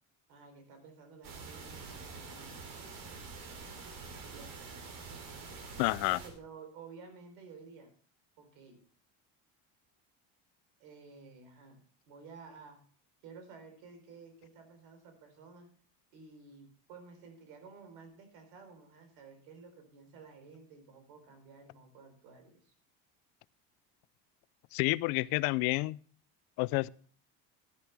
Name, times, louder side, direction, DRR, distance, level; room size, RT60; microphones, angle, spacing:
voice 1, 0.3-2.6 4.3-4.6 6.1-7.9 8.4-8.8 10.8-12.8 13.2-15.7 16.1-22.7, right 5 dB, 80° right, 3.9 m, -53 dB
sound 1, 1.2-6.3, right 4 dB, 60° right, 3.2 m, -46 dB
voice 2, 5.8-6.2 24.7-26.0 26.6-26.9, left 22 dB, 70° left, 0.5 m, -29 dB
11.5 x 11.0 x 3.4 m
supercardioid pair, 95°, 37 cm